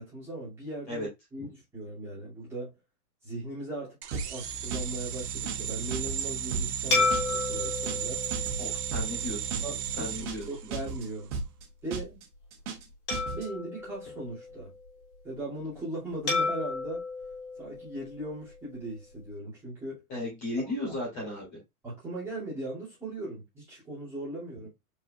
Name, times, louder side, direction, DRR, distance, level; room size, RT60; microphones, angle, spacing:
voice 1, 0.0-2.7 3.2-8.2 9.2-9.3 9.6-10.1 10.5-11.3 11.8-12.2 13.3-14.7 15.2-17.0 17.6-20.0 20.8-20.9 21.8-24.7, right 2 dB, 5° right, 2.6 m, -38 dB
sound 1, 4.0-11.1, right 8 dB, 85° right, 1.0 m, -35 dB
sound 2, 4.1-4.4 4.7-5.0 5.3-5.7 5.9-6.3 6.5-6.8 7.1-7.4 7.7-8.1 8.3-8.7 8.9-9.2 9.5-9.8 10.1-10.5 10.7-11.1 11.3-11.6 11.9-12.2 12.5-12.9 13.1-13.5, right 4 dB, 50° right, 1.7 m, -35 dB
sound 3, 6.9-9.6 10.2-10.4 13.1-14.9 16.3-18.6, left 3 dB, 45° left, 2.9 m, -32 dB
voice 2, 8.6-9.6 10.0-10.4 20.1-21.5, left 1 dB, 20° left, 2.7 m, -35 dB
4.9 x 4.5 x 2.4 m
supercardioid pair, 180°, 45 cm